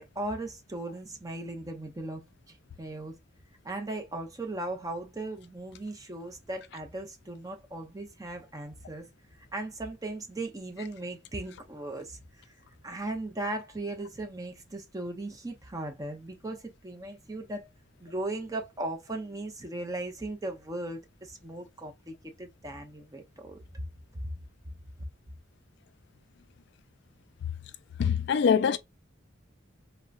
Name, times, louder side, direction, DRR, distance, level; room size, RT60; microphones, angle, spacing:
voice 1, 0.0-3.1 3.6-9.1 9.5-12.5 12.8-17.7 18.0-24.4, right 2 dB, 20° right, 0.6 m, -38 dB
voice 2, 28.0-28.8, left 7 dB, 60° left, 0.3 m, -23 dB
3.7 x 2.1 x 2.3 m
head